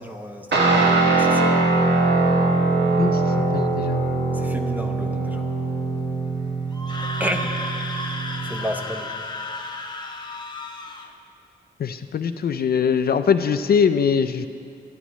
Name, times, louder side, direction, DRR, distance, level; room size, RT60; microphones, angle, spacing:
voice 1, 0.0-1.6 4.3-5.5 7.0-7.5 8.4-9.1, equal, 10° right, 4 dB, 0.7 m, -32 dB
Guitar, 0.5-8.7, right 3 dB, 75° right, 1.3 m, -22 dB
voice 2, 3.0-4.0 11.8-14.5, left 6 dB, 60° left, 9 dB, 0.4 m, -22 dB
Screaming, 6.7-11.1, left 2 dB, 25° left, 0.7 m, -33 dB
13.5 x 11.0 x 3.1 m, 2.4 s
wide cardioid pair, 120°, 18 cm